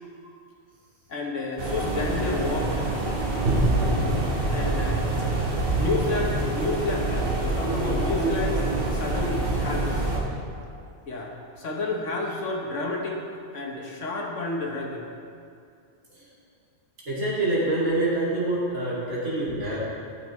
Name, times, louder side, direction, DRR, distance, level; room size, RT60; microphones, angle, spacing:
voice 1, 1.1-2.8 4.5-5.0 5.7-8.7 8.9-10.1 11.1-13.2 13.5-15.0, left 2 dB, 65° left, 0 dB, 1.4 m, -30 dB
sound 1, 1.6-10.2, right 2 dB, 45° right, 1.4 m, -25 dB
voice 2, 17.1-19.8, right 2 dB, 85° right, -8 dB, 2.9 m, -26 dB
12.5 x 6.6 x 3.1 m, 2.4 s
omnidirectional pair, 1.4 m